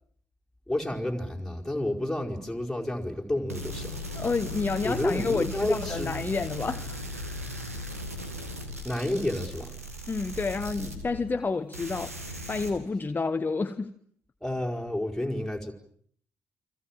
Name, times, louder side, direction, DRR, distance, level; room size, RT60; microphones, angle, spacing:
voice 1, 0.7-4.0 4.8-6.1 8.8-9.7 14.4-15.7, left 1 dB, 5° left, 4.8 m, -30 dB
sound 1, 3.5-11.5 11.7-12.7, left 1 dB, 85° right, 2.5 m, -37 dB
voice 2, 4.1-7.0 10.1-13.9, left 4 dB, 25° left, 1.2 m, -30 dB
29.5 x 24.5 x 7.5 m
figure-of-eight pair, 40°, 8 cm